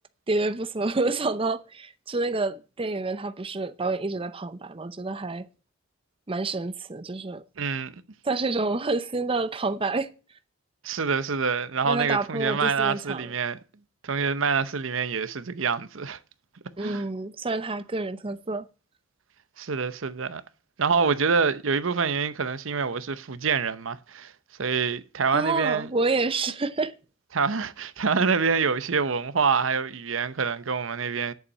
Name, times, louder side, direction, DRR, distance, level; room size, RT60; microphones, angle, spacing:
voice 1, 0.3-5.5 6.3-7.4 8.2-10.1 11.8-13.3 16.8-18.7 25.3-26.9, right 3 dB, 25° right, 0.7 m, -28 dB
voice 2, 7.6-7.9 10.8-13.6 14.0-16.2 16.8-17.0 19.6-20.4 20.8-24.3 24.6-25.9 27.3-31.3, right 5 dB, 80° right, 0.8 m, -26 dB
8.3 x 7.0 x 8.5 m
head